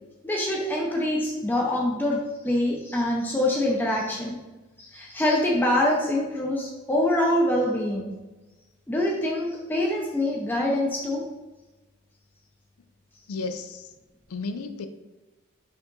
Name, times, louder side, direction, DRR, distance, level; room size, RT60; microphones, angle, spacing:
voice 1, 0.2-4.4 4.8-8.1 8.9-11.3, left 1 dB, 10° left, -2 dB, 0.5 m, -25 dB
voice 2, 13.3-13.9 14.3-14.9, left 3 dB, 85° left, 9 dB, 0.4 m, -33 dB
4.3 x 2.9 x 3.9 m, 1.1 s
head